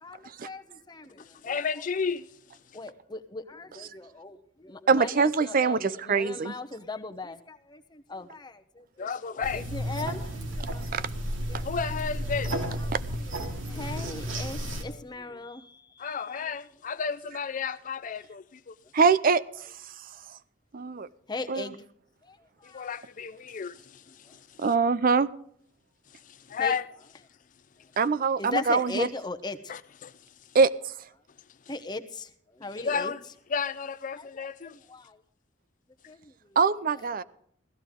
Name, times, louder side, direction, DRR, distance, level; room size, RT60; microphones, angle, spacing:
voice 1, 0.0-1.6 2.7-9.1 9.4-11.1 11.5-11.7 12.6-16.1 16.4-16.5 21.3-21.8 22.2-22.4 22.6-22.9 26.6-26.8 28.4-29.7 31.7-33.1 34.2-35.2 36.1-36.6 36.9-37.0, left 3 dB, 20° left, 0.9 m, -39 dB
voice 2, 1.2-2.3 9.0-9.7 11.6-12.7 16.0-18.8 22.6-24.7 26.1-26.9 29.7-30.1 32.7-33.2 33.5-34.8, left 6 dB, 45° left, 0.4 m, -33 dB
voice 3, 4.9-6.5 10.9-11.0 12.9-13.0 18.9-19.4 20.7-21.1 21.5-21.6 24.6-25.3 28.0-29.1 30.5-30.7 36.6-37.2, right 5 dB, 45° right, 0.5 m, -23 dB
sound 1, 9.4-14.8, equal, 90° right, 2.7 m, -33 dB
16.0 x 14.0 x 3.7 m
head